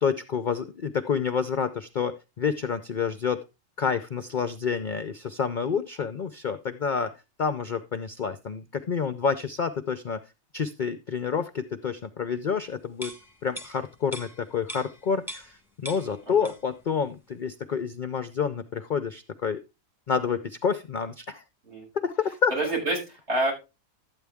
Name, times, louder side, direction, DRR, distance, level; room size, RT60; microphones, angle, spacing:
voice 1, 0.0-3.4 3.8-7.1 7.4-10.2 10.5-13.1 13.4-19.6 20.1-21.4 21.9-22.5, left 6 dB, 50° left, 10 dB, 0.6 m, -28 dB
sound 1, 12.9-15.6 15.8-16.8 17.1-17.3, equal, ahead, 1.5 m, -41 dB
voice 2, 22.5-23.5, right 2 dB, 50° right, -2 dB, 6.9 m, -27 dB
12.5 x 8.9 x 3.5 m, 0.27 s
omnidirectional pair, 1.5 m